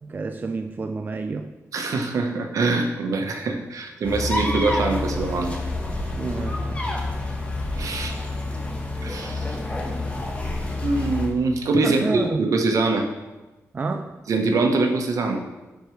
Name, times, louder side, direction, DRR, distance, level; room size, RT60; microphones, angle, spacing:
voice 1, 0.0-1.5 6.1-6.9 7.9-8.1 10.4-10.7 11.8-12.5 13.7-14.2, right 3 dB, 30° right, 6 dB, 0.4 m, -30 dB
voice 2, 1.7-5.6 7.7-8.2 9.0-9.6 10.8-13.0 14.3-15.4, right 3 dB, 70° right, 3 dB, 1.0 m, -23 dB
sound 1, 4.0-11.3, left 2 dB, 20° left, 1.2 m, -28 dB
11.5 x 4.7 x 3.2 m, 1.1 s
cardioid pair, 100°, 6 cm